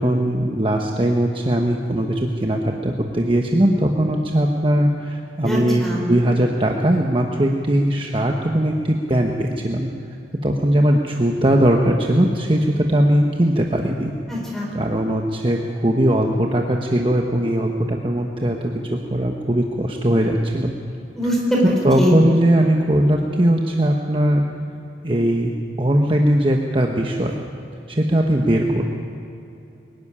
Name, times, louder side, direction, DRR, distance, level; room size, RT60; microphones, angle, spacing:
voice 1, 0.0-9.9 10.4-14.1 14.7-20.7 21.8-24.5 25.0-27.4 27.9-28.8, right 1 dB, 30° right, 1 dB, 1.1 m, -19 dB
voice 2, 5.4-6.0 14.3-14.7 21.2-22.1, equal, ahead, -2 dB, 5.1 m, -22 dB
22.5 x 13.0 x 9.9 m, 2.8 s
head